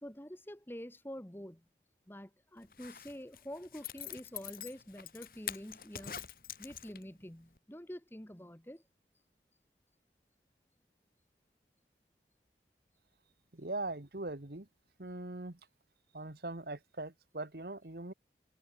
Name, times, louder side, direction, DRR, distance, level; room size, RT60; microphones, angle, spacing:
voice 1, 0.0-1.7 2.1-6.2 6.6-8.8, equal, 10° left, 1.6 m, -47 dB
Zipper (clothing), 2.6-7.2 7.6-7.7, left 10 dB, 55° left, 3.5 m, -45 dB
voice 2, 13.5-14.7 15.0-15.6 16.1-18.1, right 2 dB, 60° right, 1.6 m, -41 dB
head